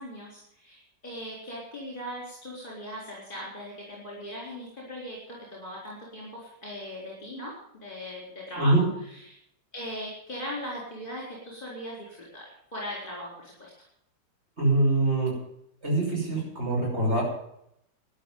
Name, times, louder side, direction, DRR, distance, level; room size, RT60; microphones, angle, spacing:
voice 1, 0.0-9.3 9.7-12.5 12.7-13.7, equal, 30° left, -4 dB, 4.5 m, -39 dB
voice 2, 14.6-15.4 15.8-17.2, right 2 dB, 35° right, -2 dB, 6.3 m, -24 dB
13.0 x 10.0 x 9.3 m, 0.76 s
omnidirectional pair, 1.9 m